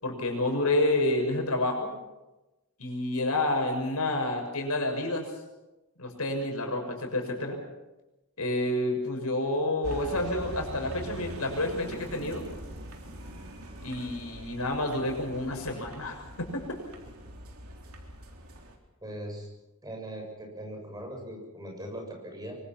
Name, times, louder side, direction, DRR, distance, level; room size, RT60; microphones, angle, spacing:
voice 1, 0.0-1.9 2.8-5.2 6.0-7.6 8.4-12.4 13.8-16.6, left 1 dB, 80° left, 3 dB, 6.6 m, -29 dB
sound 1, 9.8-18.8, right 1 dB, 70° right, 3.9 m, -43 dB
voice 2, 19.0-19.5 19.8-22.6, right 1 dB, 15° right, 1 dB, 7.1 m, -40 dB
25.0 x 24.5 x 6.1 m, 1.0 s
head